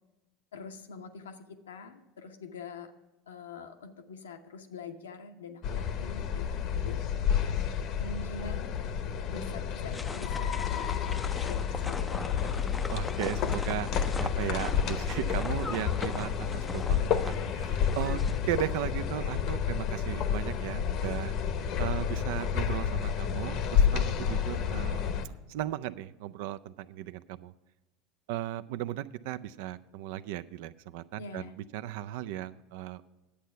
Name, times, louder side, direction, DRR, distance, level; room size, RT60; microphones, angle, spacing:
voice 1, 0.5-2.9 3.3-7.0 8.0-8.8 9.3-12.7 18.1-18.3 31.2-31.5, left 4 dB, 85° left, 6 dB, 0.9 m, -45 dB
sound 1, 5.6-25.3, left 8 dB, 55° left, 0.8 m, -30 dB
sound 2, 9.9-18.4, left 3 dB, 15° left, 0.4 m, -41 dB
voice 2, 12.9-13.9 14.2-18.2 18.5-25.0 25.5-27.5 28.3-33.0, right 13 dB, 70° right, 13 dB, 0.4 m, -36 dB
10.0 x 8.2 x 5.6 m, 1.1 s
hypercardioid pair, 80°, 0 cm